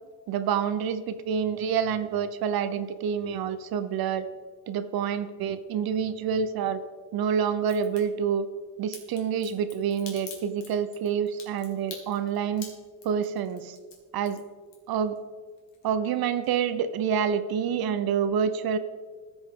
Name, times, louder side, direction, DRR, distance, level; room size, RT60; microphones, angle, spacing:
voice 1, 0.3-4.3 4.7-6.8 7.1-8.5 8.8-12.7 13.0-13.8 14.1-14.4 14.9-15.2 15.8-18.8, right 7 dB, 55° right, 13 dB, 0.7 m, -27 dB
Crack, 7.6-8.0 8.9-15.2 15.5-16.1 16.4-16.5, left 6 dB, 80° left, 2.1 m, -45 dB
15.0 x 5.3 x 3.6 m, 1.5 s
cardioid pair, 120°, 44 cm